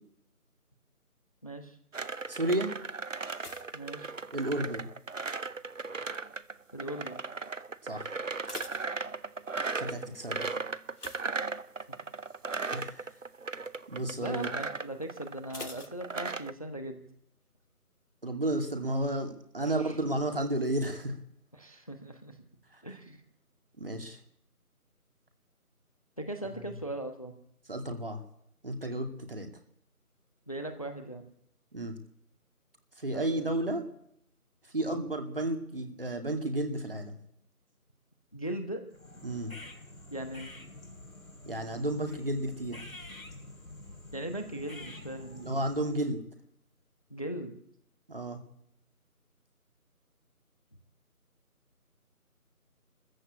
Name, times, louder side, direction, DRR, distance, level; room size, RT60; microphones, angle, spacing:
voice 1, 1.4-1.8 3.7-4.1 6.7-7.2 9.8-10.0 11.9-12.0 14.2-17.0 19.6-19.9 21.5-22.4 22.8-23.2 26.2-27.3 30.5-31.2 33.1-33.7 34.8-35.0 38.3-38.8 40.1-40.5 44.1-45.6 47.1-47.5, right 1 dB, 25° left, 7 dB, 1.1 m, -39 dB
sound 1, 1.9-16.5, right 4 dB, 60° right, 0.8 m, -37 dB
voice 2, 2.3-2.7 4.3-4.9 7.8-8.2 9.8-10.5 12.7-13.0 13.9-14.5 18.2-21.1 22.7-22.8 23.8-24.2 26.5-26.8 27.7-28.2 28.6-29.5 31.7-32.0 33.0-33.9 34.7-37.2 39.2-39.5 41.5-42.9 45.4-46.2 48.1-48.4, right 1 dB, 40° right, 5 dB, 2.4 m, -32 dB
sound 2, 3.3-4.8 5.1-5.6 6.2-6.6 6.9-7.0 7.4-7.5 8.1-9.6 10.9-12.1 12.4-12.7 13.1-13.2 15.5-16.7 17.0-17.1, left 2 dB, 85° left, 1.8 m, -47 dB
sound 3, 38.9-46.2, left 2 dB, 65° left, 2.9 m, -48 dB
23.0 x 14.5 x 8.5 m, 0.73 s
figure-of-eight pair, 165°, 45 cm